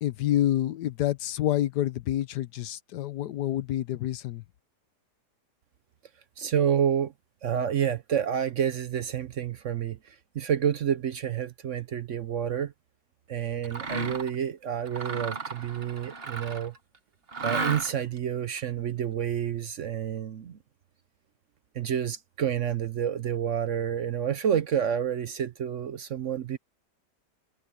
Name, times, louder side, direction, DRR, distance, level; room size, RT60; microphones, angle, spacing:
voice 1, 0.0-4.4, left 13 dB, 80° left, 1.4 m, -28 dB
voice 2, 6.4-7.1 7.4-12.7 13.3-16.7 17.4-20.6 21.7-26.6, right 9 dB, 60° right, 0.9 m, -29 dB
Mechanisms, 13.6-14.4 14.9-16.8 17.3-18.2, right 3 dB, 35° right, 1.7 m, -34 dB
omnidirectional pair, 1.8 m